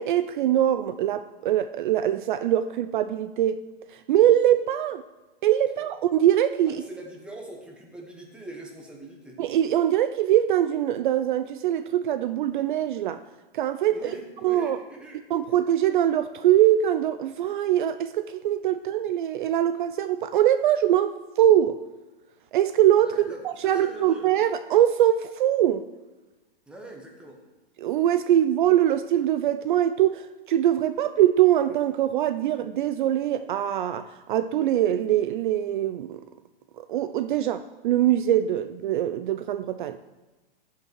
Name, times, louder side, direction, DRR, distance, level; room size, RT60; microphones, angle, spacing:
voice 1, 0.0-3.6 3.9-5.0 5.4-6.8 9.4-13.2 13.5-14.0 14.4-14.8 15.3-21.8 22.5-23.2 23.4-25.8 27.8-36.2 36.9-40.0, right 11 dB, 55° right, 0.5 m, -23 dB
voice 2, 6.7-9.4 13.9-15.2 23.0-24.3 26.7-27.4, right 2 dB, 5° right, 1.2 m, -42 dB
14.0 x 5.8 x 4.6 m
hypercardioid pair, 155°, 30 cm